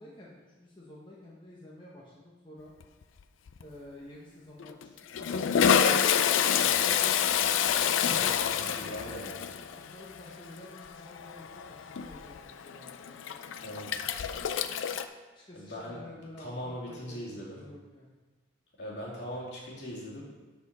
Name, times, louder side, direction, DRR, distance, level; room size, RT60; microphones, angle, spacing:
voice 1, 0.0-2.7 3.6-7.0 8.0-9.0 9.7-14.7 15.3-18.2, left 1 dB, 25° left, -5 dB, 0.9 m, -50 dB
Toilet flush, 2.8-3.2 3.5-3.6 4.6-15.1, left 8 dB, 80° left, 0.4 m, -28 dB
voice 2, 8.2-9.3 13.6-14.0 15.5-17.6 18.8-20.2, equal, 60° left, -5 dB, 2.4 m, -40 dB
12.0 x 4.4 x 4.2 m, 1.2 s
head